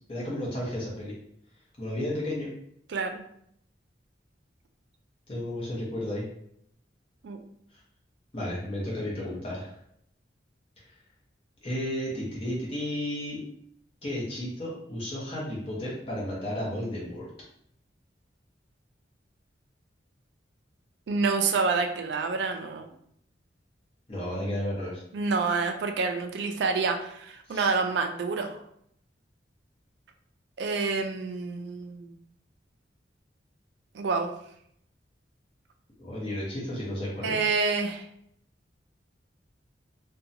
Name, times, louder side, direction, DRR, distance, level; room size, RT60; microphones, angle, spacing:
voice 1, 0.1-1.1 1.8-2.5 5.3-6.2 8.3-9.7 11.6-13.4 14.0-17.3 24.1-25.0 27.5-27.7 36.0-37.4, left 1 dB, 30° left, -6 dB, 0.9 m, -33 dB
voice 2, 2.9-3.2 7.2-7.4 21.1-22.8 25.1-28.6 30.6-32.1 33.9-34.3 37.2-38.1, right 4 dB, 65° right, 5 dB, 0.3 m, -28 dB
2.6 x 2.2 x 2.7 m, 0.70 s
head